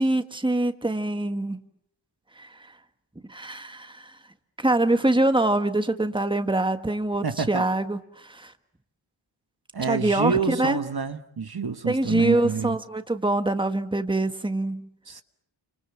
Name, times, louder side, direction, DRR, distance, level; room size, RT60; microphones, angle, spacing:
voice 1, 0.0-1.6 2.4-2.7 3.3-4.2 4.6-8.5 9.8-10.8 11.8-14.9, right 2 dB, 10° right, 1.6 m, -24 dB
voice 2, 7.2-7.6 9.7-12.8 15.1-15.2, right 5 dB, 50° right, 1.5 m, -27 dB
29.5 x 26.5 x 7.4 m
wide cardioid pair, 75°, 47 cm